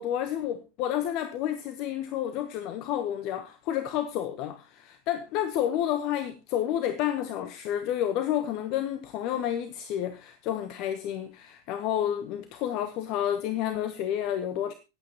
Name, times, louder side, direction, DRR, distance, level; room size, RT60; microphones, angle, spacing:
voice 1, 0.0-14.7, left 11 dB, 40° left, 1.0 m, -30 dB
25.5 x 8.6 x 2.9 m
figure-of-eight pair, 90°, 0 cm